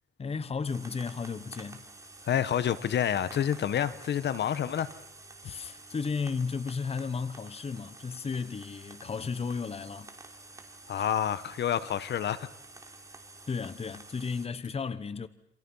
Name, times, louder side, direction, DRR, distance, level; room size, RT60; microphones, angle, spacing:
voice 1, 0.2-1.8 5.4-10.1 11.0-11.1 13.5-15.3, left 5 dB, 30° left, 1.1 m, -34 dB
sound 1, 0.7-14.5, right 2 dB, 15° right, 3.3 m, -50 dB
voice 2, 2.2-4.9 10.9-12.5, left 9 dB, 60° left, 1.3 m, -28 dB
28.5 x 26.5 x 5.7 m
cardioid pair, 90°, 20 cm